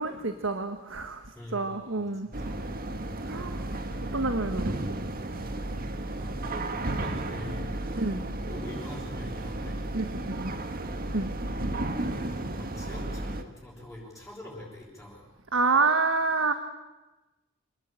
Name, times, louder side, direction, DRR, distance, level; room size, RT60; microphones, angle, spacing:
voice 1, 0.0-1.2 1.5-2.3 3.3-3.6 4.1-5.0 8.0-8.2 9.9-10.5 11.1-11.3 15.5-16.5, right 3 dB, 70° right, 8 dB, 1.6 m, -28 dB
voice 2, 1.3-2.6 6.2-8.0 8.4-9.8 12.0-15.3, left 1 dB, ahead, -8 dB, 6.7 m, -44 dB
sound 1, 2.3-13.4, right 1 dB, 45° right, 1.8 m, -33 dB
26.5 x 20.0 x 9.0 m, 1.1 s
head